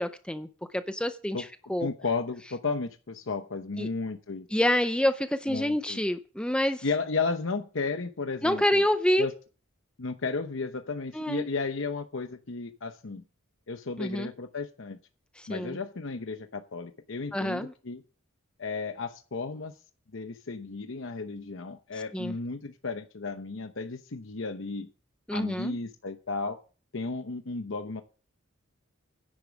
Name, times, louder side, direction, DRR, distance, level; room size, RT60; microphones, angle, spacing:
voice 1, 0.0-1.9 3.8-3.9 4.5-6.8 8.4-9.3 11.1-11.5 14.0-14.3 15.4-15.8 17.3-17.7 22.1-22.3 25.3-25.8, left 1 dB, 5° left, 0.5 m, -27 dB
voice 2, 1.8-4.5 5.5-6.0 6.8-8.8 9.2-9.3 10.0-13.2 13.7-15.0 15.5-18.0 18.6-19.7 20.1-24.9 25.3-26.6 26.9-28.0, left 4 dB, 65° left, 0.9 m, -33 dB
10.5 x 8.4 x 6.0 m
head